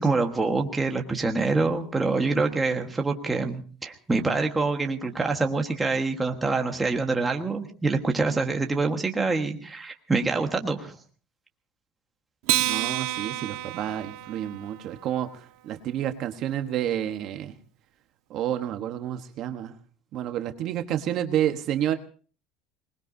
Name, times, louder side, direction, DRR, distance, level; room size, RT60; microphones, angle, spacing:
voice 1, 0.0-11.0, right 3 dB, 10° right, 3 dB, 1.4 m, -26 dB
Acoustic guitar, 12.4-15.1, right 16 dB, 70° right, 1.5 m, -29 dB
voice 2, 12.6-17.6 18.3-19.8 20.1-21.9, right 11 dB, 40° right, 6 dB, 1.1 m, -29 dB
25.0 x 20.5 x 2.7 m, 0.39 s
cardioid pair, 175°, 0 cm